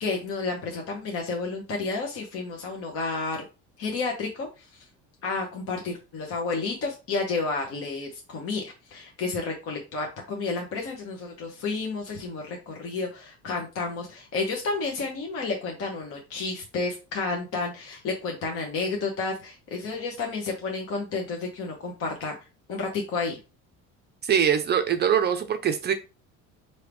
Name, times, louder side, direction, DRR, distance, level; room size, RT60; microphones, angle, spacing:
voice 1, 0.0-3.4 3.8-4.6 5.2-22.3 22.7-23.4, left 4 dB, 45° left, 1.1 m, -31 dB
voice 2, 24.2-25.9, right 8 dB, 30° right, 0.5 m, -23 dB
4.6 x 2.8 x 3.4 m
cardioid pair, 135°, 32 cm